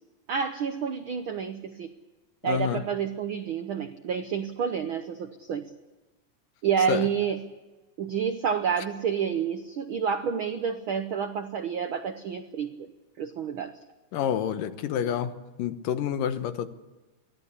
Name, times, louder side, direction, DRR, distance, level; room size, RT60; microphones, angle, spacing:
voice 1, 0.3-1.9 2.4-5.7 6.6-7.4 8.0-13.8, right 7 dB, 90° right, 9 dB, 1.1 m, -29 dB
voice 2, 2.4-2.8 6.9-7.1 14.1-15.3 15.6-16.7, left 9 dB, 90° left, 10 dB, 2.8 m, -28 dB
23.5 x 17.0 x 8.4 m, 1.2 s
omnidirectional pair, 3.7 m